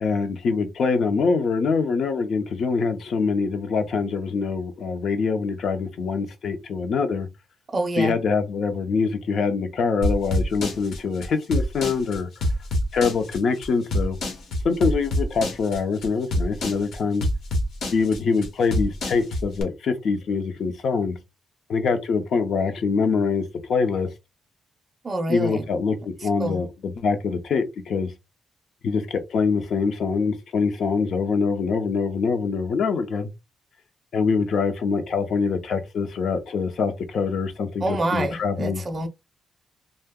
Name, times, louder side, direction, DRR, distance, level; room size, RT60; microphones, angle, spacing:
voice 1, 0.0-7.3 8.0-12.3 12.9-14.2 14.6-17.3 17.9-21.2 21.7-24.1 25.3-28.1 28.8-33.3 34.1-38.8, left 5 dB, 55° left, 0.6 m, -24 dB
voice 2, 7.7-8.2 25.0-25.7 26.2-26.6 37.8-39.1, right 2 dB, 30° right, 0.5 m, -27 dB
sound 1, 10.0-19.6, left 1 dB, 75° left, 1.0 m, -26 dB
2.7 x 2.1 x 3.6 m
wide cardioid pair, 155°, 0 cm